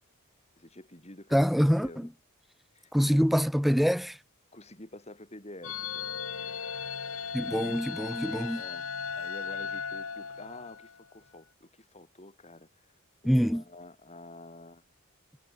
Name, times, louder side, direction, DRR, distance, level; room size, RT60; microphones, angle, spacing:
voice 1, 0.6-1.5 1.8-2.1 2.7-3.3 4.5-6.1 7.4-7.8 8.6-8.9 9.1-12.9 13.2-14.8, left 1 dB, 30° left, 3.2 m, -48 dB
voice 2, 1.3-2.1 2.9-4.2 7.3-8.6 13.2-13.6, equal, ahead, 0.6 m, -25 dB
sound 1, 5.6-11.0, left 6 dB, 70° left, 1.9 m, -37 dB
head